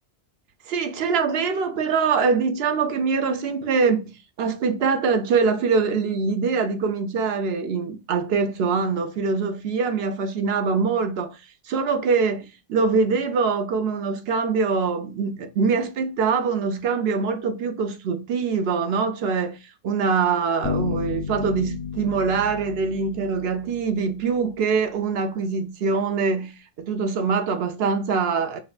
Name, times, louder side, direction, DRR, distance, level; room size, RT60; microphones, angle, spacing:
voice 1, 0.7-4.1 4.4-11.4 11.7-19.6 19.8-26.5 26.8-28.6, right 5 dB, 70° right, 0.8 m, -23 dB
sound 1, 20.6-24.4, left 6 dB, 45° left, 0.5 m, -32 dB
4.4 x 2.3 x 2.3 m
omnidirectional pair, 1.1 m